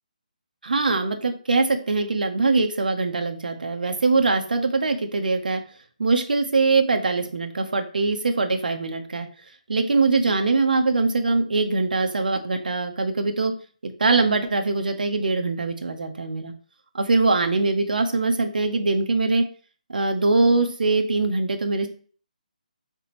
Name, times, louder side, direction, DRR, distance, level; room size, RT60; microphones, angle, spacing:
voice 1, 0.6-5.6 6.0-9.3 9.7-13.5 13.8-16.5 16.9-19.4 19.9-21.9, right 3 dB, 80° right, 5 dB, 0.6 m, -22 dB
4.0 x 3.4 x 2.9 m, 0.41 s
hypercardioid pair, 175°, 5 cm